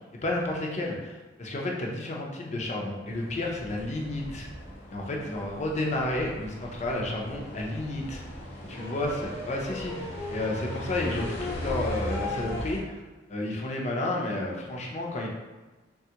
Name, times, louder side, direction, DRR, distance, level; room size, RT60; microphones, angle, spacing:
voice 1, 0.2-4.5 4.9-8.2 8.7-13.0 13.3-15.3, left 2 dB, 40° left, -1 dB, 0.5 m, -31 dB
sound 1, 3.1-12.8, left 1 dB, 60° left, 1.0 m, -37 dB
3.3 x 2.3 x 2.8 m, 1.2 s
head